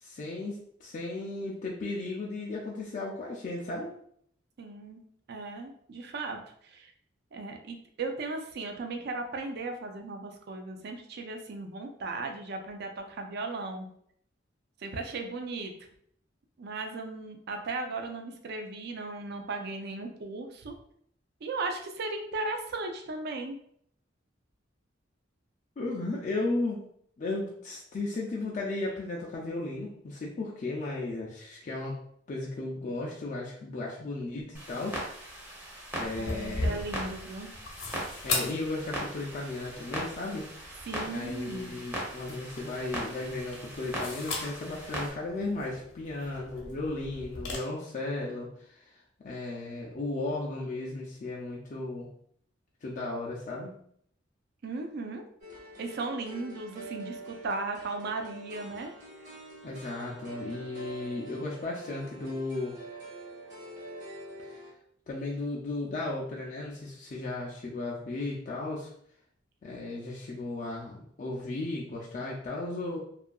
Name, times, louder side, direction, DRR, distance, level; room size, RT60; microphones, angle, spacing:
voice 1, 0.0-3.9 25.8-26.8 27.2-32.0 32.3-35.0 36.0-36.8 38.2-40.5 41.1-48.8 49.2-52.1 52.8-53.8 59.6-62.8 64.4-64.6 65.1-68.9 69.6-73.0, left 2 dB, 40° left, -3 dB, 0.4 m, -35 dB
voice 2, 4.6-5.0 5.3-6.9 7.3-13.9 14.8-15.7 16.6-20.8 21.4-23.6 36.2-37.5 40.9-41.7 54.6-55.2 55.8-58.9, right 3 dB, 55° right, 4 dB, 0.4 m, -36 dB
Clock, 34.5-45.1, equal, 10° right, 0.6 m, -40 dB
sound 1, 36.1-47.6, left 2 dB, 75° left, 0.8 m, -39 dB
sound 2, 55.4-64.7, right 2 dB, 40° right, 0.9 m, -45 dB
2.7 x 2.4 x 2.2 m, 0.66 s
head